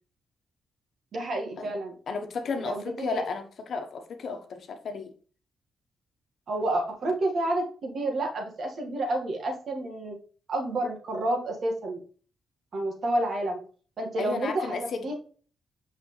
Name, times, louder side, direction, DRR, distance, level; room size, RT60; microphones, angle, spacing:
voice 1, 1.1-1.9 2.6-3.2 6.5-10.2 10.5-12.0 12.7-13.6 14.0-15.1, right 1 dB, 60° right, 1.8 m, -29 dB
voice 2, 2.1-5.1 14.2-15.1, left 4 dB, 65° left, 1.1 m, -33 dB
6.1 x 5.5 x 3.2 m
cardioid pair, 80°, 0 cm